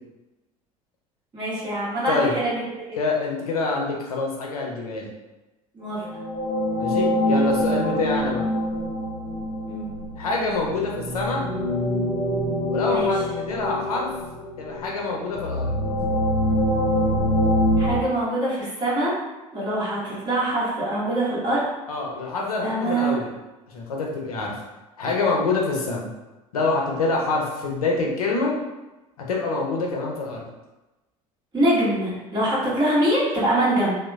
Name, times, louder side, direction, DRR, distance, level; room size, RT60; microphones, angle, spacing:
voice 1, 1.3-2.6 5.7-6.0 7.9-8.0 9.7-9.9 12.8-13.1 17.8-19.1 19.5-21.6 22.6-23.1 31.5-33.9, right 1 dB, 25° right, -9 dB, 1.3 m, -24 dB
voice 2, 2.1-2.4 3.0-5.1 6.8-8.4 10.2-11.4 12.7-14.1 14.6-15.7 21.9-23.4 23.7-24.6 25.0-26.1 26.5-28.6 29.3-30.5, left 3 dB, 80° left, -1 dB, 0.5 m, -26 dB
sound 1, 5.9-18.0, equal, 30° left, 1.0 m, -25 dB
2.8 x 2.1 x 2.2 m, 1.1 s
figure-of-eight pair, 65°, 19 cm